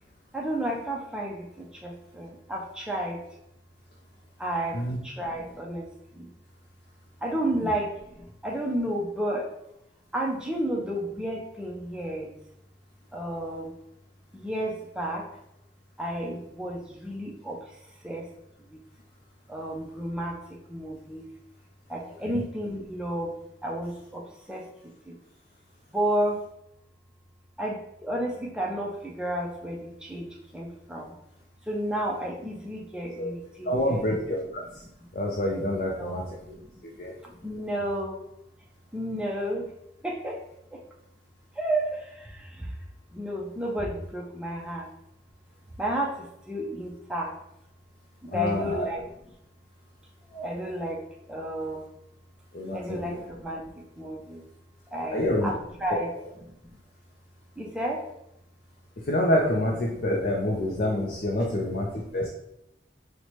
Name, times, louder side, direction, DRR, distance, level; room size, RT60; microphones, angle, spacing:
voice 1, 0.3-3.2 4.4-6.3 7.2-9.5 10.1-12.4 13.1-13.7 14.3-15.3 16.0-17.8 18.0-18.3 18.7-18.8 19.5-21.3 21.9-23.4 23.6-25.2 25.9-26.4 27.6-31.1 31.6-34.1 34.8-34.9 36.0-36.7 37.2-38.2 38.9-39.7 40.0-40.4 40.7-40.8 41.5-42.8 43.1-44.9 45.8-47.3 48.2-49.0 50.3-51.0 51.3-51.9 52.7-54.4 54.9-55.5 55.8-56.1 56.6-56.8 57.6-58.0 61.8-62.3, right 1 dB, 5° right, -2 dB, 0.4 m, -32 dB
voice 2, 33.6-34.6 35.1-36.5 36.8-37.1 48.3-48.8 52.5-53.2 55.1-55.5 55.9-56.0 59.0-62.3, left 1 dB, 50° left, -1 dB, 0.4 m, -27 dB
4.5 x 2.1 x 2.8 m, 0.82 s
head